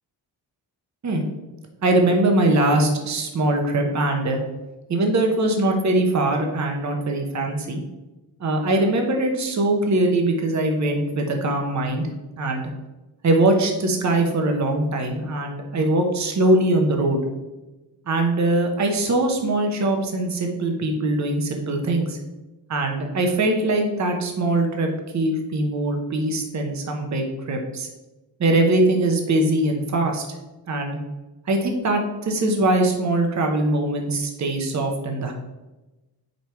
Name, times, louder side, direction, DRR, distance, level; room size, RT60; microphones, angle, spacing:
voice 1, 1.8-4.4 4.9-7.8 8.4-12.1 12.4-12.7 13.2-17.2 18.1-22.2 22.7-27.9 28.4-30.3 30.7-31.0 31.5-35.3, right 2 dB, 40° right, 3 dB, 0.9 m, -22 dB
5.3 x 4.5 x 4.5 m, 1.1 s
wide cardioid pair, 155°, 43 cm